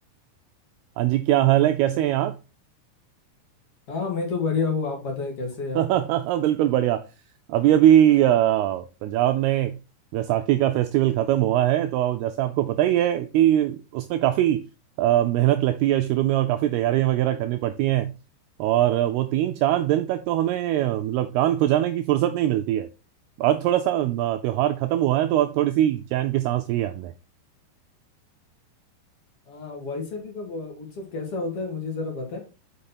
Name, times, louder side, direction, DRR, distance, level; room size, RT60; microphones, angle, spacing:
voice 1, 1.0-2.3 5.8-7.0 7.5-9.8 10.1-14.6 15.0-18.1 18.6-22.9 23.4-27.1, right 12 dB, 85° right, 2.3 m, -21 dB
voice 2, 3.9-5.8 29.5-32.4, left 4 dB, 50° left, 1.9 m, -29 dB
6.6 x 5.6 x 4.3 m
omnidirectional pair, 5.1 m